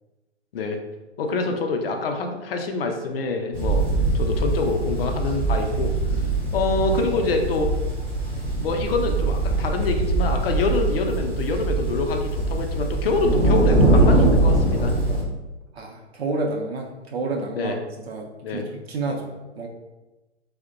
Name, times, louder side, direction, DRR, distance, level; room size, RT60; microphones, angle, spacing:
voice 1, 1.2-3.9 4.1-5.9 6.5-7.7 8.6-14.9 17.5-17.8 18.4-18.6, left 3 dB, 55° left, 4 dB, 0.5 m, -25 dB
sound 1, 3.5-15.2, right 2 dB, 10° right, 0.4 m, -22 dB
voice 2, 15.7-19.7, right 3 dB, 60° right, 1 dB, 0.5 m, -30 dB
2.5 x 2.1 x 2.4 m, 1.1 s
hypercardioid pair, 130°, 35 cm